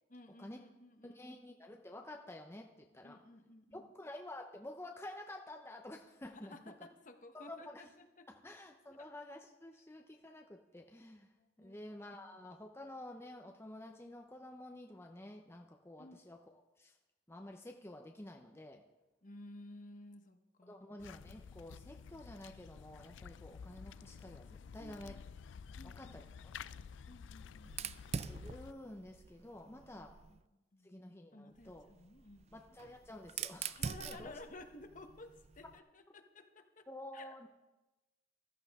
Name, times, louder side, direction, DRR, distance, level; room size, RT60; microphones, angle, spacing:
voice 1, 0.1-1.4 3.0-3.9 6.5-8.3 8.9-9.1 11.6-11.8 16.0-16.2 19.2-20.9 24.8-25.2 25.8-26.2 27.1-28.0 30.0-30.9 31.3-32.6 33.8-36.9 37.1-37.5, left 2 dB, 45° left, 6 dB, 1.1 m, -55 dB
voice 2, 1.0-3.2 3.7-6.7 7.3-7.8 8.3-11.3 11.6-17.0 17.3-18.8 20.7-25.2 25.8-26.5 28.3-30.1 30.8-31.9 32.5-34.3 36.9-37.5, left 1 dB, 15° left, 2 dB, 0.7 m, -50 dB
sound 1, 21.0-28.7, left 6 dB, 85° left, 0.4 m, -51 dB
Fire, 27.6-30.4 31.6-35.8, right 6 dB, 35° right, 0.4 m, -45 dB
14.5 x 13.5 x 3.6 m, 1.0 s
head